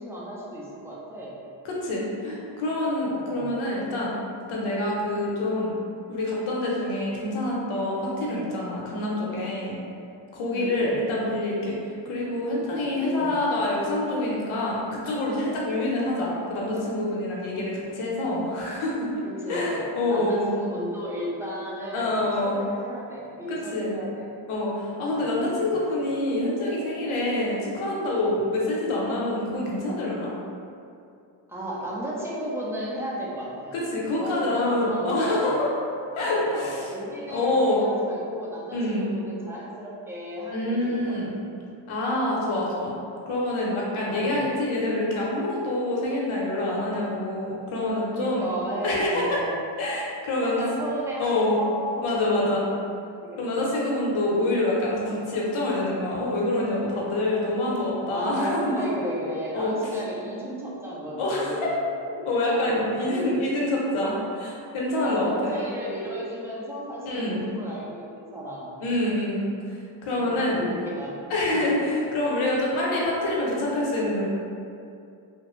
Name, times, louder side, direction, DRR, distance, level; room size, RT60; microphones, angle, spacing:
voice 1, 0.0-1.4 3.0-3.5 10.5-11.0 12.8-13.4 19.2-24.3 24.9-25.5 31.5-33.7 34.1-35.6 36.3-41.2 44.1-44.5 48.1-49.6 50.4-52.7 53.2-53.7 58.1-61.8 62.4-62.8 63.1-63.4 65.0-68.8 70.1-71.7, equal, 5° right, -6 dB, 0.7 m, -34 dB
voice 2, 1.6-4.2 4.5-5.7 6.1-9.8 10.3-11.8 12.1-19.2 19.5-20.5 21.9-22.6 23.5-23.9 24.5-30.3 33.7-35.7 36.2-36.9 37.3-37.9 38.7-39.1 40.5-41.3 41.9-42.9 43.3-48.5 48.8-49.4 49.8-50.6 51.2-51.6 52.0-52.7 53.4-58.7 59.5-59.8 61.2-61.7 62.0-65.6 67.1-67.4 68.8-70.6 71.3-74.3, left 1 dB, 90° left, -4 dB, 0.8 m, -26 dB
3.1 x 2.1 x 3.0 m, 2.5 s
cardioid pair, 65°, 48 cm